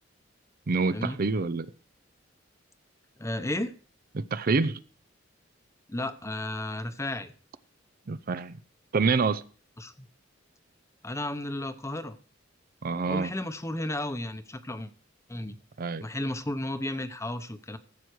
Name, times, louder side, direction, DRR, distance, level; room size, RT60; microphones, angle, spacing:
voice 1, 0.7-1.7 4.1-4.8 8.1-8.6 8.9-9.4 12.8-13.3 15.8-16.0, right 4 dB, 45° right, 15 dB, 0.5 m, -26 dB
voice 2, 3.2-3.7 5.9-7.3 9.8-10.1 11.0-12.2 13.1-14.9 15.3-15.6 16.0-17.8, left 1 dB, 15° left, 11 dB, 0.8 m, -33 dB
14.5 x 8.0 x 4.7 m, 0.40 s
head